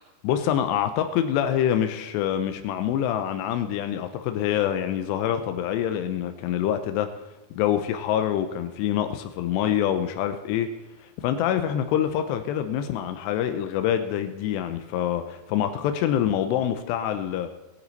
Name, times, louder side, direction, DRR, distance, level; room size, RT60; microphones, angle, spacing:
voice 1, 0.2-7.1 7.5-10.7 11.0-17.5, left 10 dB, 85° left, 8 dB, 2.4 m, -26 dB
21.5 x 9.2 x 4.0 m, 1.1 s
omnidirectional pair, 5.8 m